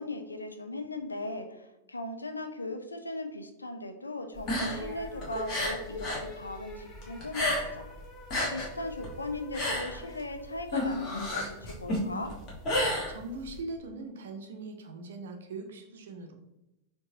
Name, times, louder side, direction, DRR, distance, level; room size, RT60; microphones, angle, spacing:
voice 1, 0.0-7.9 8.5-12.3, left 2 dB, 80° left, 7 dB, 0.4 m, -38 dB
sound 1, 4.3-6.3 6.6-7.9 8.2-13.6, left 1 dB, 35° left, 1.1 m, -31 dB
sound 2, 4.5-11.1, left 2 dB, 20° left, 0.7 m, -47 dB
voice 2, 12.8-16.3, right 3 dB, 60° right, 5 dB, 0.5 m, -41 dB
4.4 x 2.7 x 2.7 m, 0.91 s
figure-of-eight pair, 90°, 0 cm